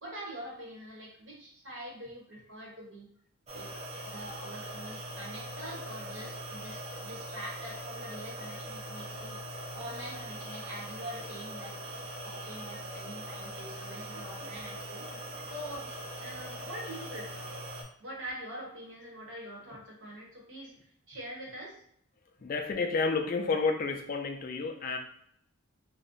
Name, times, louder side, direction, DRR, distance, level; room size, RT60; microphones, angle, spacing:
voice 1, 0.0-3.1 3.5-9.4 9.7-11.7 12.2-15.1 15.4-15.9 16.2-17.5 18.0-21.8, right 1 dB, 60° right, -2 dB, 0.9 m, -44 dB
sound 1, 3.5-17.8, equal, 30° right, 0.5 m, -41 dB
voice 2, 22.4-25.0, left 4 dB, 40° left, 5 dB, 0.3 m, -30 dB
2.5 x 2.1 x 3.7 m, 0.65 s
head